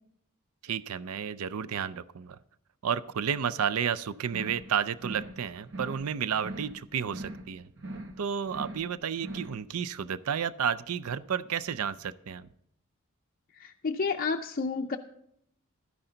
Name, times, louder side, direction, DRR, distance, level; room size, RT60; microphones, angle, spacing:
voice 1, 0.6-2.4 2.8-7.7 8.2-12.5, right 7 dB, 75° right, 17 dB, 0.5 m, -31 dB
sound 1, 4.3-4.7 5.0-5.4 5.7-6.1 6.4-6.8 7.1-7.5 7.8-8.2 8.5-8.9 9.2-9.6, right 1 dB, 55° right, 0.9 m, -41 dB
voice 2, 13.5-15.0, left 4 dB, 40° left, 4 dB, 0.4 m, -30 dB
12.5 x 10.0 x 3.9 m, 0.72 s
head